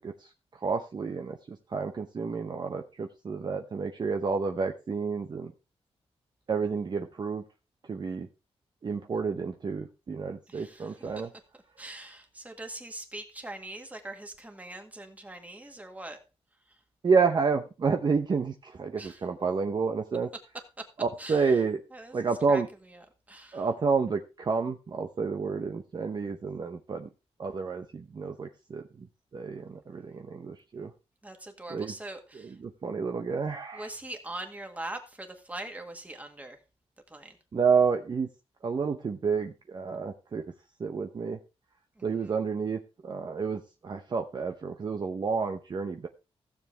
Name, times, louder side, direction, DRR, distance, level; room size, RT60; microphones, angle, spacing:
voice 1, 0.6-5.5 6.5-7.4 7.8-8.3 8.8-11.3 17.0-20.3 21.0-21.8 22.1-22.7 23.5-27.1 27.4-29.1 29.3-30.9 31.7-31.9 32.6-33.9 37.5-38.3 38.6-40.4 40.8-41.4 42.0-46.1, right 5 dB, 45° right, 5 dB, 0.8 m, -30 dB
voice 2, 10.5-11.3 11.8-16.2 19.0-19.2 20.8-20.9 21.2-21.6 21.9-22.6 22.9-23.7 31.2-32.6 33.7-36.6 37.1-37.4 42.0-42.3, right 2 dB, 15° right, 4 dB, 1.9 m, -42 dB
15.5 x 7.1 x 3.4 m, 0.29 s
wide cardioid pair, 115°, 11 cm